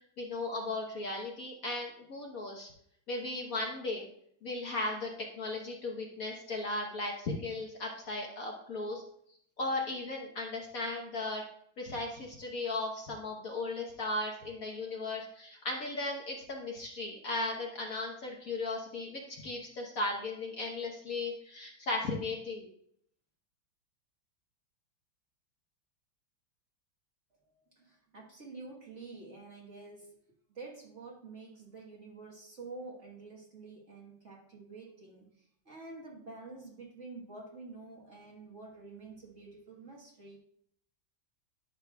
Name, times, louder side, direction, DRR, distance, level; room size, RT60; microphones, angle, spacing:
voice 1, 0.2-2.7 3.1-4.1 4.4-9.0 9.6-11.4 11.8-22.7, left 2 dB, 50° left, 0 dB, 1.3 m, -36 dB
voice 2, 27.8-30.2 30.5-40.4, right 3 dB, 40° right, -2 dB, 1.5 m, -48 dB
11.5 x 6.5 x 2.3 m, 0.67 s
omnidirectional pair, 2.2 m